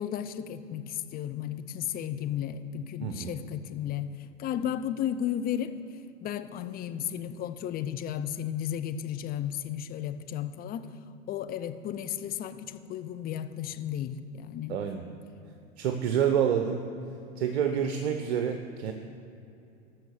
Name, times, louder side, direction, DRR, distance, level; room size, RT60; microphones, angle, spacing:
voice 1, 0.0-4.1 4.4-5.8 6.2-10.9 11.3-14.8, left 10 dB, 25° left, 10 dB, 0.6 m, -34 dB
voice 2, 3.0-3.4 14.7-15.0 15.8-16.8 17.4-18.9, right 8 dB, 65° right, 6 dB, 0.9 m, -28 dB
12.0 x 6.6 x 6.6 m, 2.7 s
hypercardioid pair, 100°, 35 cm